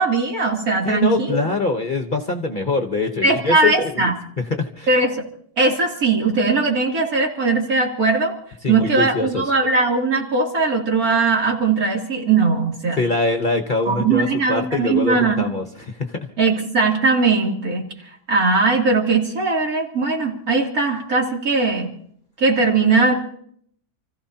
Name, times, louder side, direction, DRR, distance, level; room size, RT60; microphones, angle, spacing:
voice 1, 0.0-1.4 3.2-4.1 4.9-5.2 5.6-8.3 8.7-13.0 13.9-15.5 16.4-17.9 18.3-21.9 22.4-23.1, right 4 dB, 60° right, -1 dB, 3.4 m, -19 dB
voice 2, 0.8-4.9 8.6-9.4 12.9-16.3, left 3 dB, 35° left, 4 dB, 1.1 m, -23 dB
29.5 x 15.0 x 2.8 m, 0.63 s
omnidirectional pair, 1.7 m